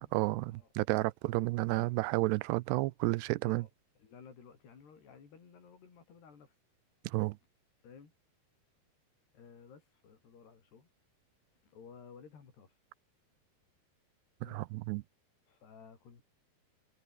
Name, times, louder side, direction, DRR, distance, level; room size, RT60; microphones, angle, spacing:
voice 1, 0.1-3.6 7.0-7.4 14.5-15.0, right 21 dB, 85° right, 2.8 m, -31 dB
voice 2, 4.0-6.6 7.8-8.2 9.3-10.9 11.6-12.8 14.4-14.7 15.5-16.2, left 6 dB, 70° left, 7.1 m, -55 dB
omnidirectional pair, 4.8 m